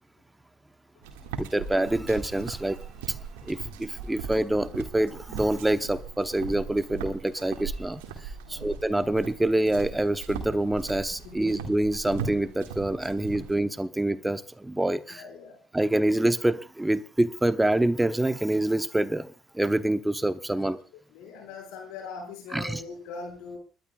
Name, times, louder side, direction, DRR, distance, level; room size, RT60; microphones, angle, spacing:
sound 1, 1.0-13.6, right 5 dB, 90° right, 1.9 m, -39 dB
voice 1, 1.4-2.8 3.5-8.0 8.5-15.2 15.7-19.3 19.5-20.8 22.5-22.8, right 1 dB, 10° right, 0.9 m, -26 dB
voice 2, 8.4-8.8 11.2-11.7 15.1-15.6 20.6-20.8 21.1-23.6, left 4 dB, 80° left, 5.2 m, -41 dB
30.0 x 11.5 x 2.4 m
hypercardioid pair, 60°, 0 cm